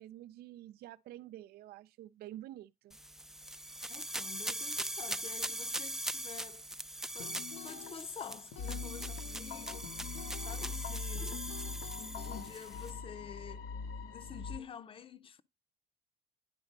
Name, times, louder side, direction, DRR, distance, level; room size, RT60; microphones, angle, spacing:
voice 1, 0.0-3.0, right 13 dB, 65° right, 0.4 m, -49 dB
sound 1, 2.9-12.9, right 1 dB, 5° right, 0.4 m, -41 dB
voice 2, 3.9-6.6 7.1-11.8 12.2-15.4, left 7 dB, 30° left, 0.7 m, -49 dB
sound 2, 7.2-12.5, left 10 dB, 85° left, 1.2 m, -48 dB
sound 3, 8.6-14.6, left 4 dB, 65° left, 1.4 m, -43 dB
10.5 x 4.0 x 5.3 m
cardioid pair, 110°, 17 cm